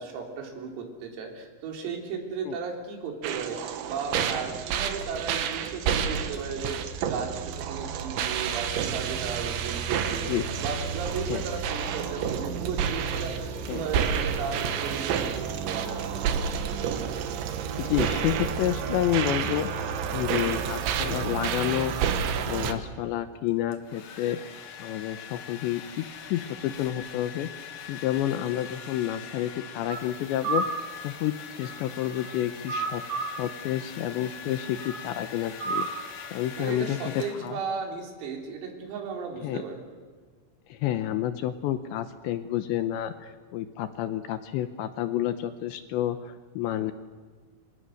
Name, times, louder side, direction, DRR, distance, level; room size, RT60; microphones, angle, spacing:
voice 1, 0.0-10.3 10.6-16.3 36.6-39.9, right 5 dB, 90° right, 2 dB, 6.3 m, -35 dB
sound 1, 3.2-22.7, right 7 dB, 70° right, 3.6 m, -30 dB
voice 2, 17.8-19.7 20.1-21.9 22.5-24.4 24.8-26.0 26.3-27.5 27.9-30.7 31.0-35.9 36.3-37.6 39.4-39.6 40.7-46.9, left 12 dB, 75° left, 10 dB, 2.8 m, -29 dB
Domestic sounds home sounds, 23.5-37.8, left 8 dB, 60° left, 2.1 m, -43 dB
sound 2, 29.9-30.1 30.4-30.9 31.4-32.4 32.7-33.5 34.8-35.1 35.6-36.1, right 4 dB, 50° right, 2.6 m, -31 dB
29.0 x 26.0 x 6.5 m, 1.5 s
omnidirectional pair, 5.9 m